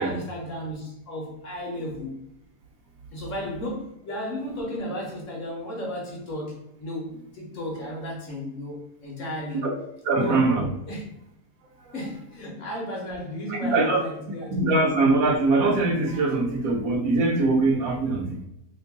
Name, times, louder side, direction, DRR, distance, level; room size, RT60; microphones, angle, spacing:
voice 1, 0.0-2.2 3.1-9.7 10.1-10.4 10.9-11.1 11.9-14.9, left 1 dB, 60° left, -2 dB, 1.1 m, -34 dB
voice 2, 10.1-10.7 13.5-14.0 14.5-18.5, right 3 dB, 70° right, 3 dB, 1.0 m, -22 dB
2.9 x 2.5 x 3.5 m, 0.86 s
omnidirectional pair, 1.7 m